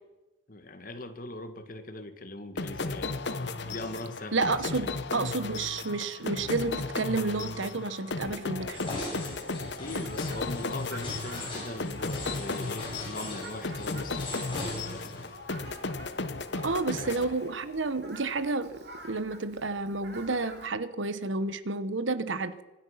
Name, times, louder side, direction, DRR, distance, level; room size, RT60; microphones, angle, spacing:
voice 1, 0.5-4.8 9.6-15.3 16.5-17.3, left 2 dB, 45° left, 8 dB, 1.6 m, -41 dB
sound 1, 2.6-17.9, left 3 dB, 60° left, 1.0 m, -35 dB
voice 2, 4.3-8.8 16.6-22.6, right 3 dB, 75° right, 13 dB, 1.1 m, -31 dB
sound 2, 8.7-15.3, left 2 dB, 25° left, 6.2 m, -40 dB
Fowl, 9.8-20.7, right 2 dB, 55° right, 3.1 m, -50 dB
25.5 x 9.9 x 5.8 m, 1.1 s
head